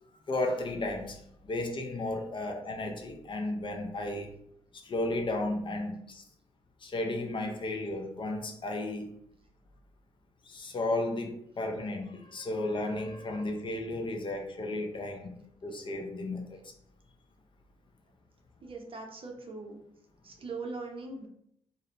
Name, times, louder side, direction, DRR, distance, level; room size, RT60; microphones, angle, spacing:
voice 1, 0.3-4.3 4.8-6.2 6.8-9.1 10.5-15.3 15.6-16.4, left 2 dB, 40° left, 2 dB, 0.6 m, -34 dB
voice 2, 18.6-19.8 20.2-21.3, right 3 dB, 45° right, 1 dB, 0.7 m, -40 dB
2.5 x 2.0 x 2.8 m, 0.72 s
hypercardioid pair, 45°, 13 cm